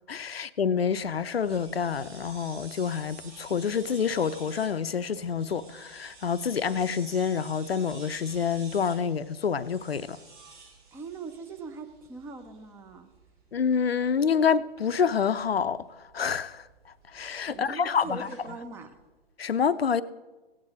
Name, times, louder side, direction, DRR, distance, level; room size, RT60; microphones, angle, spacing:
voice 1, 0.1-10.2 13.5-15.9 16.1-16.6 17.1-18.3 19.4-20.0, left 6 dB, 80° left, 0.6 m, -27 dB
sound 1, 0.9-18.9, right 3 dB, 55° right, 5.0 m, -51 dB
voice 2, 10.9-13.1 17.5-18.9, right 4 dB, 10° right, 0.6 m, -41 dB
17.0 x 8.8 x 4.0 m
figure-of-eight pair, 115°, 30 cm